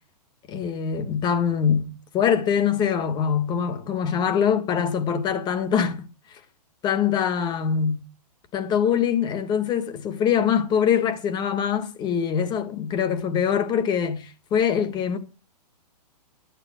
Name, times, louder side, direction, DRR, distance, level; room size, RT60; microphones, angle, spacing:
voice 1, 0.5-6.0 6.8-8.0 8.5-15.2, left 7 dB, 20° left, 1.8 m, -23 dB
13.5 x 10.0 x 6.4 m
hypercardioid pair, 150°, 21 cm